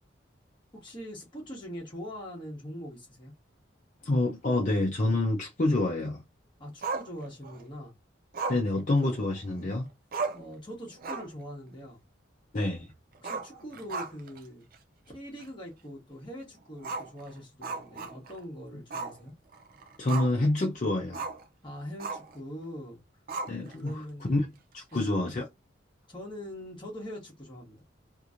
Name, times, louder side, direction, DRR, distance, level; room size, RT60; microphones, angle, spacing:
voice 1, 0.7-3.3 6.6-7.9 10.3-12.0 13.2-14.7 15.1-19.3 21.6-23.0 23.8-24.5 24.9-25.0 26.1-27.8, equal, 25° left, 1.1 m, -42 dB
voice 2, 4.0-6.2 8.5-9.9 12.5-12.9 20.0-21.3 23.5-24.5 24.7-25.5, left 2 dB, 40° left, 0.6 m, -27 dB
Growling, 6.8-7.6 8.3-9.6 9.9-10.0 10.1-10.5 10.9-11.4 11.7-11.8 13.2-14.4 14.7-14.8 15.4-15.5 16.8-18.4 18.9-19.2 19.5-20.5 21.1-21.4 22.0-22.4 23.3-23.9, right 4 dB, 50° right, 0.4 m, -36 dB
2.9 x 2.6 x 2.5 m
head